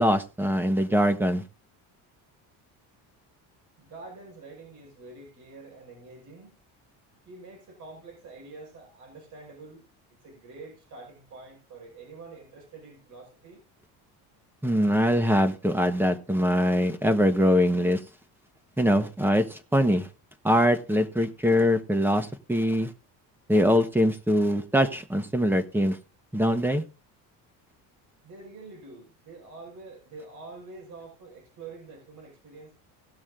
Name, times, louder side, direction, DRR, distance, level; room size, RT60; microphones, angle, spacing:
voice 1, 0.0-1.4 14.6-18.0 18.8-20.1 20.4-22.9 23.5-26.0 26.3-26.8, equal, 5° right, 1.2 m, -23 dB
voice 2, 3.8-6.6 7.3-9.8 10.2-13.6 28.2-32.7, right 3 dB, 50° right, 5.7 m, -46 dB
17.5 x 6.2 x 3.7 m
cardioid pair, 140°, 40 cm